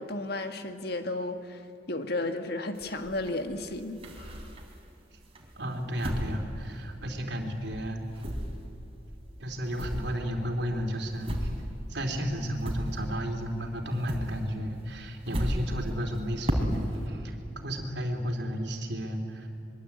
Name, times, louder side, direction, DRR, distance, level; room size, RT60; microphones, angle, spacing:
voice 1, 0.0-1.6 1.9-4.4, left 2 dB, 60° left, 6 dB, 1.8 m, -33 dB
sound 1, 2.7-4.9 5.3-7.5 7.7-13.4 13.7-17.1, equal, 30° right, 3.9 m, -35 dB
voice 2, 5.6-8.0 9.4-11.5 11.9-17.3 17.6-19.5, equal, 65° right, 2 dB, 3.4 m, -33 dB
26.0 x 22.5 x 8.6 m, 2.8 s
head